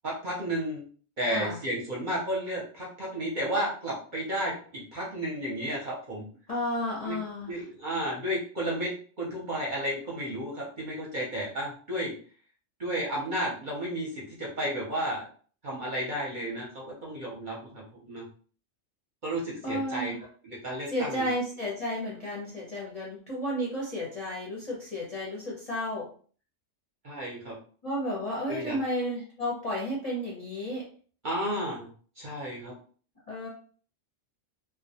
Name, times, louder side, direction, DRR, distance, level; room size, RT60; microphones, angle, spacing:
voice 1, 0.0-0.8 1.2-6.3 7.1-7.2 7.5-12.1 12.8-15.2 15.6-18.2 19.2-20.1 20.4-21.3 27.0-27.6 28.5-28.8 31.2-31.9 32.2-32.7, right 1 dB, 50° right, -4 dB, 0.6 m, -32 dB
voice 2, 1.3-1.6 6.5-7.6 19.6-20.2 20.9-26.1 27.8-30.9 33.3-33.5, equal, 40° left, -5 dB, 0.5 m, -32 dB
2.3 x 2.1 x 2.7 m, 0.43 s
omnidirectional pair, 1.3 m